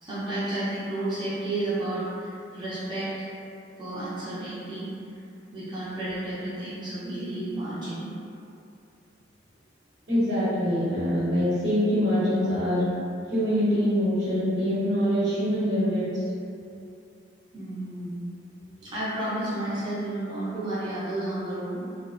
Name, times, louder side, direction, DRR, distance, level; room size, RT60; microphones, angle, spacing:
voice 1, 0.0-3.3 3.8-5.2 5.5-8.1 17.5-18.2 18.8-22.0, right 1 dB, 25° right, -11 dB, 0.5 m, -32 dB
voice 2, 10.1-12.9 13.3-16.2, equal, 85° right, -11 dB, 1.0 m, -24 dB
2.4 x 2.0 x 2.5 m, 2.6 s
head